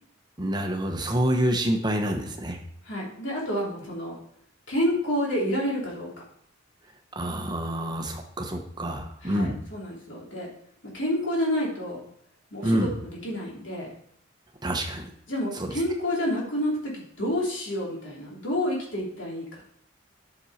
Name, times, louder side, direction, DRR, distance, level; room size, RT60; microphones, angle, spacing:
voice 1, 0.4-2.6 7.1-9.6 12.6-12.9 14.6-15.1 15.5-15.7, right 1 dB, 20° right, 3 dB, 1.0 m, -27 dB
voice 2, 2.8-4.1 4.7-6.1 9.2-10.5 10.9-12.0 12.5-13.9 15.3-19.4, equal, 60° left, -4 dB, 3.3 m, -29 dB
10.5 x 6.2 x 4.2 m, 0.67 s
head